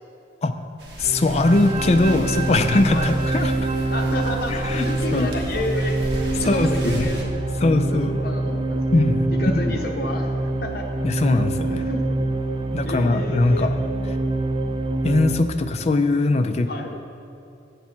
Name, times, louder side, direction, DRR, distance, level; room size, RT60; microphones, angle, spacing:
sound 1, 0.8-7.2, equal, 70° right, 1.1 m, -35 dB
voice 1, 1.0-3.5 4.5-4.9 5.1-5.3 6.4-7.1 7.6-8.1 8.9-9.3 9.5-9.8 11.0-11.8 12.7-13.7 15.0-16.7, left 2 dB, 35° left, 8 dB, 0.4 m, -20 dB
sound 2, 1.0-15.3, right 2 dB, 30° right, 0.4 m, -25 dB
voice 2, 3.9-6.0 6.3-7.3 7.9-8.8 9.3-10.9 11.7-12.1 12.6-13.7 16.7-16.9, left 2 dB, 55° left, 3 dB, 0.9 m, -31 dB
8.3 x 6.8 x 4.4 m, 2.7 s
head